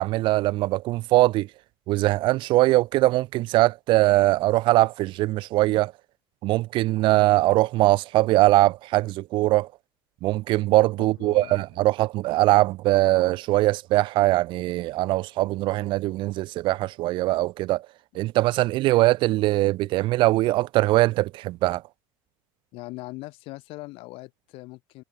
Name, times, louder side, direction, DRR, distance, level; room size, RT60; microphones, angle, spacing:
voice 1, 0.0-1.5 1.9-5.9 6.4-9.7 10.2-17.8 18.1-21.8, right 18 dB, 50° right, 1.1 m, -21 dB
voice 2, 11.0-11.6 22.7-25.0, left 22 dB, 60° left, 5.2 m, -40 dB
cardioid pair, 155°, 11 cm